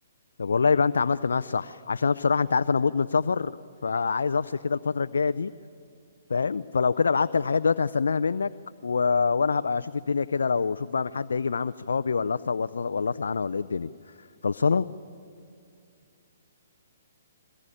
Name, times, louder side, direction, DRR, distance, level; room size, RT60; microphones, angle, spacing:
voice 1, 0.4-3.6 3.8-5.5 6.3-8.5 8.8-13.9 14.4-14.8, left 5 dB, 80° left, 12 dB, 0.5 m, -25 dB
22.5 x 20.5 x 10.0 m, 2.4 s
hypercardioid pair, 140°, 0 cm